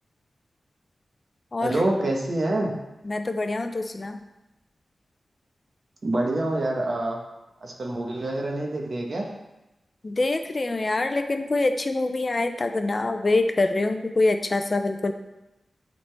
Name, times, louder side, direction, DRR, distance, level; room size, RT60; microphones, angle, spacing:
voice 1, 1.6-2.7 6.0-7.2 7.6-9.3, right 1 dB, 55° right, 0 dB, 1.3 m, -26 dB
voice 2, 3.1-4.2 10.0-15.1, left 2 dB, 35° left, 7 dB, 0.5 m, -25 dB
11.0 x 4.0 x 3.5 m, 0.97 s
wide cardioid pair, 115°, 0 cm